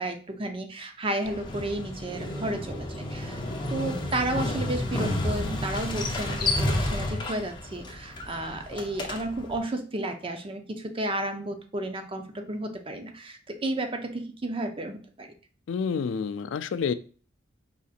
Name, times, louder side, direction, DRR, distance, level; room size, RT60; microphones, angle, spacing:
voice 1, 0.0-3.4 3.7-15.3, right 1 dB, 25° right, 6 dB, 0.6 m, -32 dB
Motorcycle, 1.2-9.6, left 1 dB, 25° left, 0.7 m, -31 dB
voice 2, 15.7-16.9, left 6 dB, 65° left, 12 dB, 0.3 m, -28 dB
4.9 x 4.2 x 2.5 m, 0.40 s
head